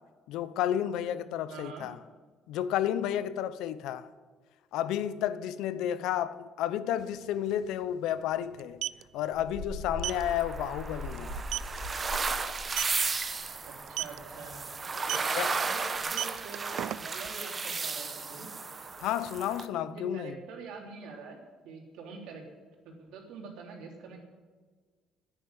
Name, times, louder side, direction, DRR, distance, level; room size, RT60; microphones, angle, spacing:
voice 1, 0.3-2.0 2.5-4.1 4.7-8.8 9.1-11.4 15.3-15.6 19.0-20.4, left 11 dB, 85° left, 0.7 m, -31 dB
voice 2, 1.5-1.9 13.6-14.6 15.0-18.5 19.8-21.4 21.6-22.4 22.8-24.2, right 4 dB, 85° right, 3.4 m, -45 dB
sound 1, 7.0-7.1 7.3-7.5 8.5-9.0 10.0-10.2 10.7-10.8 11.2-11.3 11.5-11.8 12.6-13.0 13.9-14.2 15.0-15.3 16.0-17.3, right 13 dB, 70° right, 0.3 m, -33 dB
sound 2, 9.3-13.9 14.1-14.3 14.7-14.8 15.1-15.3 15.8-16.0, left 1 dB, 5° left, 2.6 m, -41 dB
sound 3, 10.0-19.6, right 4 dB, 25° right, 1.0 m, -34 dB
10.0 x 10.0 x 9.8 m
cardioid pair, 150°, 0 cm